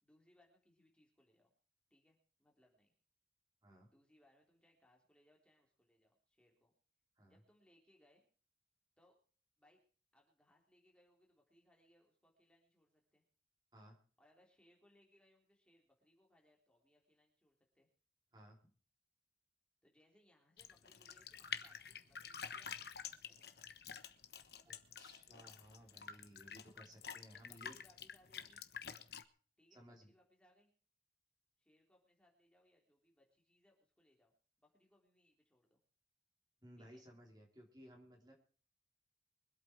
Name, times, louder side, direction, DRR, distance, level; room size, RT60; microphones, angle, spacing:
voice 1, 0.0-1.5 1.9-2.9 3.9-6.7 7.3-8.2 9.0-9.2 9.6-9.8 10.1-13.2 14.2-17.9 19.8-23.0 23.2-23.8 27.3-28.6 29.6-30.7 31.6-34.3 34.6-35.8 36.8-37.0, left 1 dB, 5° left, 0 dB, 3.6 m, -72 dB
voice 2, 18.3-18.7 24.6-27.7 29.7-30.1 36.6-38.3, equal, 25° right, -1 dB, 3.5 m, -59 dB
sound 1, 20.6-29.2, left 7 dB, 70° left, 1.2 m, -49 dB
24.5 x 8.6 x 4.6 m, 0.42 s
head